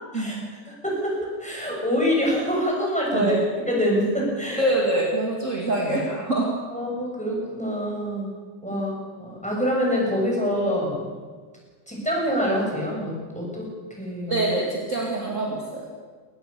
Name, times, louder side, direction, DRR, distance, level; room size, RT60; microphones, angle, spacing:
voice 1, 0.7-3.4 3.6-4.6 6.7-8.3 8.6-11.1 11.9-13.7 14.0-14.5, equal, 5° left, -3 dB, 7.1 m, -25 dB
voice 2, 3.1-3.5 4.6-6.5 14.3-15.9, right 1 dB, 40° right, -2 dB, 2.8 m, -25 dB
22.0 x 18.5 x 6.9 m, 1.5 s
omnidirectional pair, 2.1 m